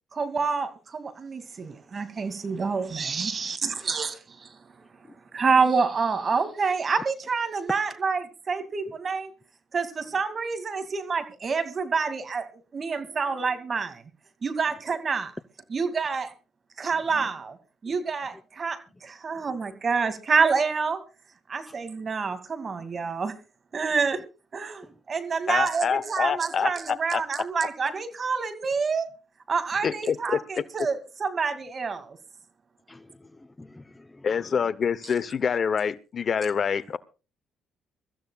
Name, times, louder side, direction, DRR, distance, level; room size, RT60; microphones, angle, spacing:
voice 1, 0.1-4.5 5.3-9.3 9.7-12.5 12.7-14.0 14.4-15.3 15.7-16.3 16.8-17.6 17.8-21.0 21.5-23.3 23.7-24.2 24.5-29.1 29.5-32.2, right 5 dB, 45° right, 2.3 m, -27 dB
voice 2, 25.5-27.2 29.8-30.6 34.2-37.0, left 6 dB, 50° left, 0.8 m, -26 dB
voice 3, 32.9-34.4, left 2 dB, 20° left, 0.7 m, -49 dB
24.5 x 14.5 x 2.4 m
supercardioid pair, 60°, 0 cm